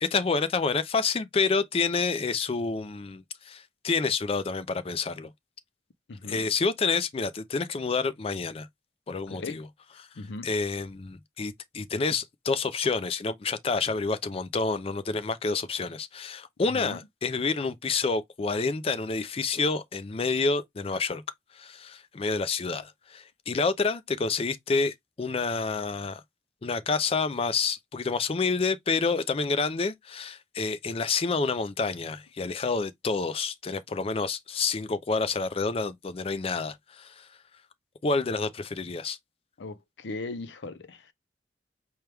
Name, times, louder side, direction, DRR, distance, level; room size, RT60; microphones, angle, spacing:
voice 1, 0.0-5.3 6.2-8.7 9.1-9.7 10.0-21.2 21.5-26.2 26.6-37.3 38.0-39.2, left 4 dB, 30° left, 0.4 m, -28 dB
voice 2, 6.1-6.4 9.4-9.6 10.2-10.5 16.7-17.0 39.6-41.1, left 3 dB, 80° left, 0.5 m, -38 dB
4.5 x 2.2 x 3.4 m
head